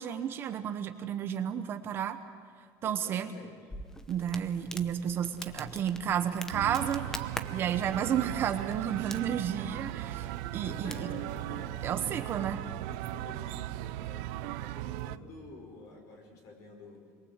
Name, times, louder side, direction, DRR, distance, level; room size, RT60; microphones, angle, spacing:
voice 1, 0.0-2.2 2.8-3.3 4.1-7.2 7.5-10.3 10.5-11.1 11.8-12.6, right 9 dB, 30° right, 8 dB, 1.0 m, -32 dB
voice 2, 2.8-3.5 10.1-17.0, left 3 dB, 45° left, 3 dB, 5.0 m, -49 dB
Crackle, 3.7-12.4, left 1 dB, 5° left, 0.9 m, -46 dB
sound 1, 6.5-15.2, right 16 dB, 90° right, 0.6 m, -37 dB
28.0 x 22.0 x 8.2 m, 2.1 s
cardioid pair, 180°, 7 cm